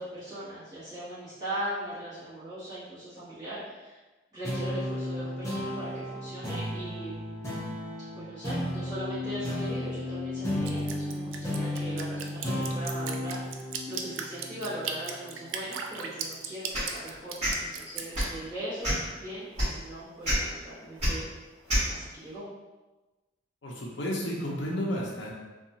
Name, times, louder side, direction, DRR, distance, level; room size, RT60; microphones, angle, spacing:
voice 1, 0.0-4.0 4.3-7.2 8.1-21.2 21.9-22.4, right 1 dB, 20° right, -15 dB, 1.2 m, -39 dB
sound 1, 4.4-15.3, left 1 dB, 15° left, 0.6 m, -34 dB
Drip, 10.7-18.3, right 6 dB, 85° right, 0.3 m, -36 dB
sound 2, 16.7-16.9 17.4-17.5 18.1-18.3 18.8-19.1 19.6-19.7 20.2-20.4 21.0-21.1 21.7-21.8, equal, 35° right, 1.4 m, -26 dB
voice 2, 23.6-25.3, equal, 65° left, -3 dB, 0.5 m, -32 dB
2.7 x 2.3 x 2.7 m, 1.2 s
head